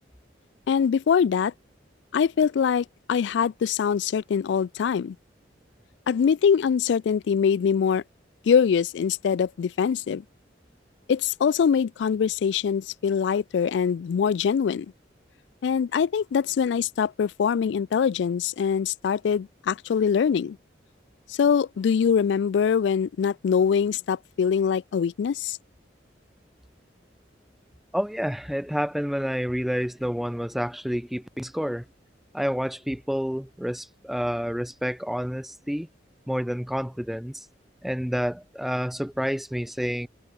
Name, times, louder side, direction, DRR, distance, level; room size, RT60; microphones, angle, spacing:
voice 1, 0.7-1.5 2.1-5.2 6.1-8.0 8.5-10.2 11.1-14.9 15.6-20.6 21.3-25.6, left 7 dB, 70° left, 0.3 m, -23 dB
voice 2, 27.9-31.8 32.3-35.9 36.3-37.5 37.8-40.1, equal, ahead, 0.4 m, -29 dB
head